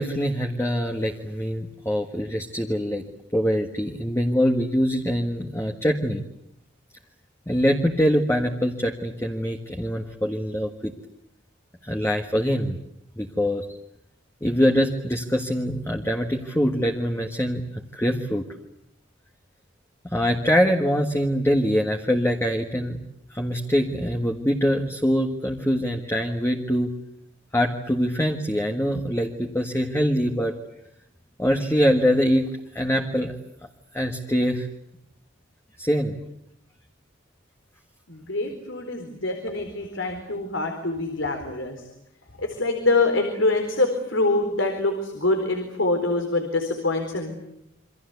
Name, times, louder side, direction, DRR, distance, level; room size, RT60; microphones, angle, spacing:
voice 1, 0.0-3.0 3.3-6.2 7.5-10.9 11.8-12.8 13.2-13.6 14.4-18.4 20.0-23.0 23.3-26.9 27.5-30.5 31.4-33.3 33.9-34.7 35.8-36.1, equal, 15° left, 3 dB, 1.6 m, -24 dB
voice 2, 38.1-41.8 42.4-47.4, left 2 dB, 90° left, 5 dB, 4.4 m, -25 dB
28.5 x 25.0 x 8.2 m, 0.77 s
head